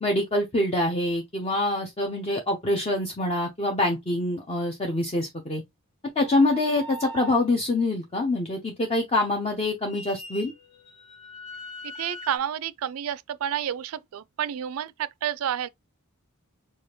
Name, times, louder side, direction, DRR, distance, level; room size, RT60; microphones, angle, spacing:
voice 1, 0.0-5.6 6.2-10.5, left 2 dB, 25° left, 0.6 m, -25 dB
sound 1, 6.2-7.5 9.9-12.4, equal, 55° left, 1.2 m, -41 dB
voice 2, 12.0-15.7, right 9 dB, 70° right, 0.3 m, -30 dB
4.8 x 2.3 x 2.9 m
head